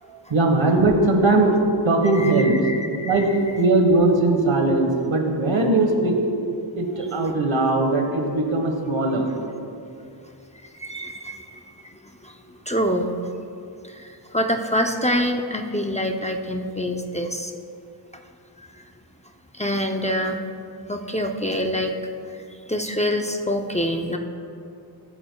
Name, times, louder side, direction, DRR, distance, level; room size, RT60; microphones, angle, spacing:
voice 1, 0.0-2.5 3.0-6.2 6.7-9.3, right 2 dB, 85° right, 3 dB, 1.5 m, -20 dB
voice 2, 2.2-3.3 10.8-13.2 13.8-17.5 18.6-18.7 19.5-20.4 20.9-22.0 22.7-24.2, equal, 15° left, 3 dB, 0.6 m, -26 dB
21.5 x 8.8 x 2.3 m, 2.6 s
wide cardioid pair, 95°, 46 cm